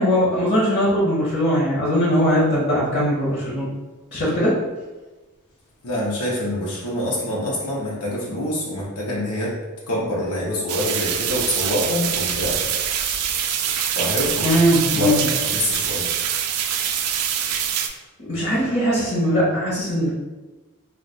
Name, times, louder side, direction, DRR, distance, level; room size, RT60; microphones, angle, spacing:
voice 1, 0.0-3.7 4.1-4.6 14.4-15.1 18.3-20.2, equal, 50° left, -7 dB, 0.8 m, -20 dB
voice 2, 5.8-9.6 9.9-12.6 13.9-14.6 14.9-16.1, left 1 dB, 80° left, -4 dB, 0.7 m, -25 dB
sound 1, 10.7-17.9, right 8 dB, 90° right, 0.3 m, -24 dB
2.3 x 2.3 x 3.8 m, 1.2 s
head